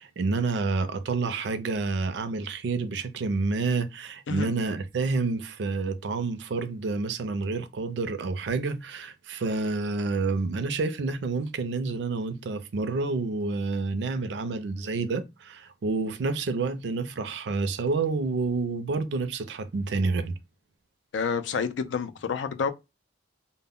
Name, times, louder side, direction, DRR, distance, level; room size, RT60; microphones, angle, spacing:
voice 1, 0.0-20.4, right 3 dB, 70° right, 0.4 m, -29 dB
voice 2, 21.1-22.7, left 6 dB, 80° left, 0.4 m, -29 dB
2.1 x 2.1 x 3.5 m
head